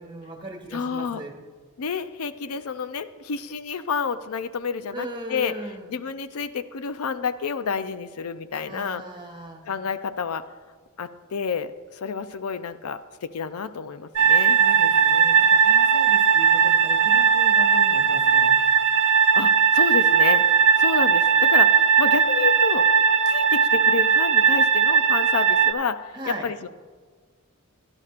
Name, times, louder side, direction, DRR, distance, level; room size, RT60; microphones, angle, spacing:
voice 1, 0.0-1.4 4.9-5.9 8.6-9.7 14.6-18.6 26.1-26.5, right 1 dB, 20° right, 2 dB, 1.5 m, -38 dB
voice 2, 0.7-1.2 1.8-5.5 5.9-9.0 9.7-10.4 11.0-11.7 12.0-14.6 19.2-20.4 20.8-22.9 23.3-26.7, left 5 dB, 70° left, 11 dB, 0.5 m, -29 dB
sound 1, 14.2-25.7, right 7 dB, 70° right, 0.6 m, -18 dB
16.5 x 11.5 x 2.5 m, 1.5 s
head